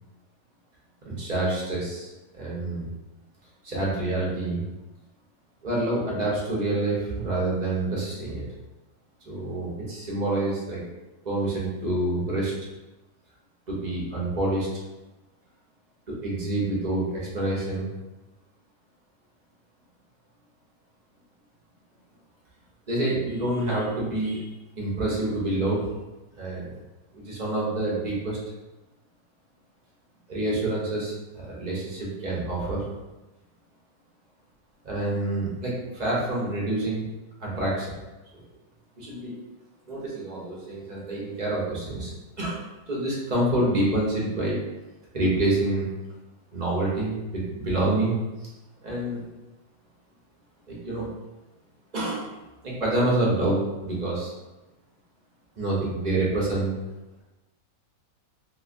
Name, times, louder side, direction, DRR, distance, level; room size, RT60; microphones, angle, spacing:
voice 1, 1.1-2.9 3.6-4.6 5.6-8.5 9.3-10.8 11.2-12.5 13.7-14.7 16.1-17.9 22.9-24.5 24.8-25.9 26.4-26.7 27.1-28.4 30.3-32.8 34.8-37.1 37.4-38.0 38.3-38.4 39.0-39.3 39.9-42.1 42.4-44.6 45.1-45.9 46.5-48.2 48.8-49.2 50.7-51.1 51.9-52.3 52.6-54.3 55.6-56.7, right 2 dB, 40° right, -5 dB, 0.7 m, -27 dB
3.0 x 2.9 x 2.4 m, 1.1 s
omnidirectional pair, 1.5 m